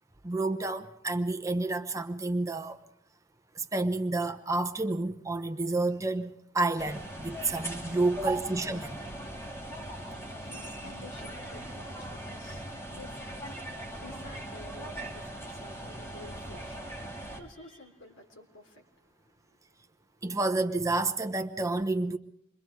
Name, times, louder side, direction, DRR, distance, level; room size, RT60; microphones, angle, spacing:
voice 1, 0.2-2.8 3.5-9.0 20.2-22.2, right 2 dB, 15° right, 0.9 m, -30 dB
sound 1, 6.8-17.4, right 1 dB, 15° left, 2.4 m, -40 dB
voice 2, 9.8-19.9, left 2 dB, 75° left, 3.7 m, -52 dB
27.5 x 23.0 x 4.7 m
head